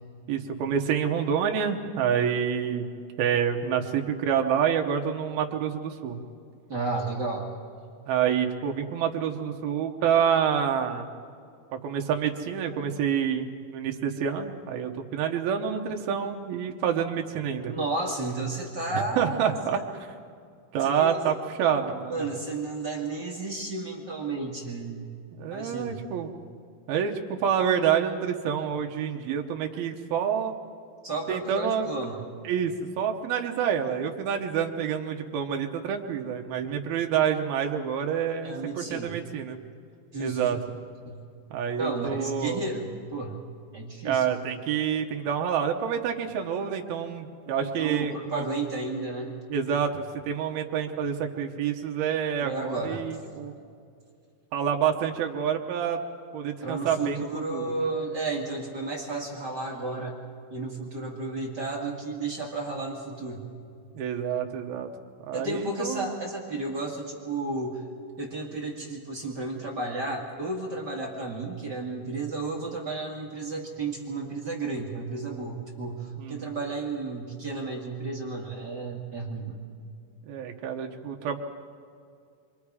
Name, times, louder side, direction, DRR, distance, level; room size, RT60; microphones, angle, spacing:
voice 1, 0.3-2.9 3.2-6.2 8.1-11.1 11.8-17.7 18.9-19.8 20.7-22.2 25.3-26.3 26.9-30.5 31.3-31.9 32.4-39.6 40.2-40.6 41.5-42.6 44.0-48.5 49.5-53.5 54.5-56.0 56.3-57.3 57.5-57.6 64.0-64.9 65.3-66.1 76.2-76.5 80.3-81.4, right 8 dB, 85° right, 2 dB, 3.0 m, -27 dB
voice 2, 6.7-7.5 17.7-19.8 20.8-21.2 22.1-25.1 25.5-26.0 31.0-32.2 38.4-39.2 40.1-40.5 41.1-41.3 41.7-43.4 43.7-44.3 47.5-49.3 52.4-53.0 56.6-60.2 60.5-63.5 65.3-67.8 68.2-79.6, right 3 dB, 35° right, -2 dB, 2.2 m, -32 dB
27.5 x 24.0 x 4.8 m, 2.3 s
omnidirectional pair, 4.2 m